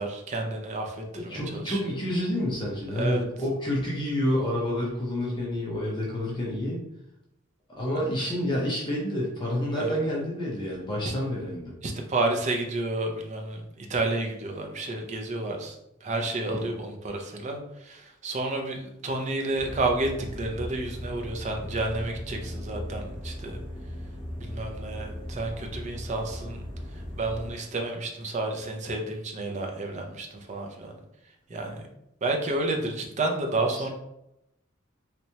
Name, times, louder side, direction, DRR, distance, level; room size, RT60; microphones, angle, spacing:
voice 1, 0.0-1.8 2.9-3.2 9.8-10.0 11.1-11.2 11.8-23.6 24.4-26.6 27.1-30.9 31.5-31.8 32.2-33.9, right 2 dB, 35° right, 2 dB, 0.5 m, -30 dB
voice 2, 1.1-6.8 7.8-11.7 16.5-16.8 33.7-33.9, left 1 dB, 25° left, -4 dB, 0.7 m, -29 dB
sound 1, 19.5-27.5, equal, 5° right, 1.0 m, -38 dB
3.2 x 3.0 x 2.8 m, 0.84 s
head